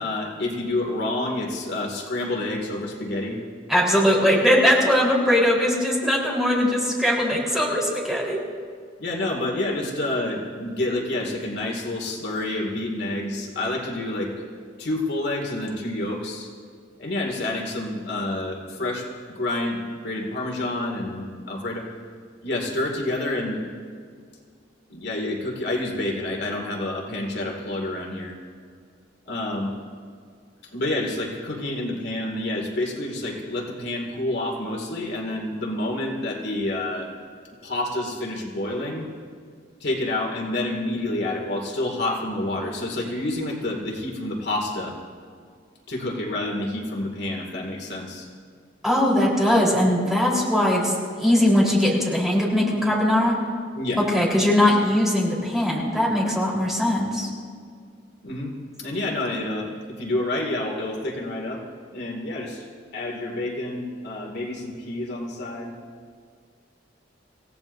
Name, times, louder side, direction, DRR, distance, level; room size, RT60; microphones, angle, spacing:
voice 1, 0.0-3.4 9.0-14.3 14.8-16.5 17.0-19.0 19.3-19.8 20.0-21.9 22.4-23.6 24.9-28.3 29.3-29.7 30.7-37.1 37.6-39.1 39.8-44.9 45.9-48.2 53.8-54.0 58.2-58.5 58.8-59.7 60.0-61.6 61.9-62.6 62.9-65.7, left 1 dB, 60° left, 0 dB, 2.3 m, -28 dB
voice 2, 3.7-8.4 48.8-53.3 54.0-57.3, left 1 dB, ahead, -4 dB, 3.9 m, -20 dB
27.0 x 17.0 x 2.7 m, 2.1 s
head